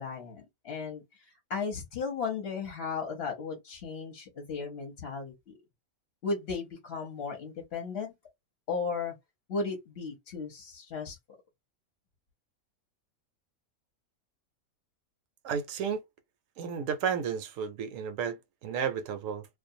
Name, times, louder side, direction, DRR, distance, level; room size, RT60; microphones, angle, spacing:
voice 1, 0.0-5.5 6.2-8.1 8.7-9.1 9.5-11.2, left 5 dB, 50° left, 0.9 m, -35 dB
voice 2, 15.4-16.0 16.6-19.5, right 7 dB, 70° right, 0.9 m, -32 dB
2.4 x 2.2 x 2.7 m
omnidirectional pair, 1.5 m